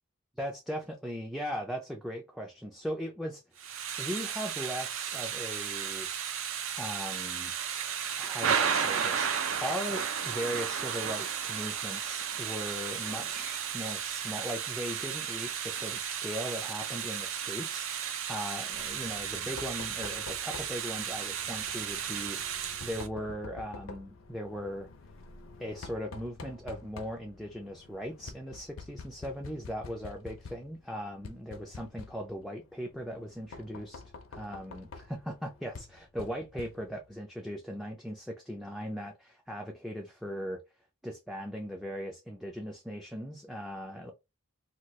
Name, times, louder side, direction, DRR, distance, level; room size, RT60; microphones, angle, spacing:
voice 1, 0.4-3.4 4.0-6.1 6.8-7.5 8.2-24.9 25.6-34.0 34.3-40.6 41.0-44.1, equal, ahead, 0.3 m, -39 dB
Thunder / Rain, 3.6-23.1, right 8 dB, 65° right, 0.5 m, -34 dB
Knock, 18.7-37.1, left 4 dB, 65° left, 0.5 m, -48 dB
2.8 x 2.2 x 3.0 m
head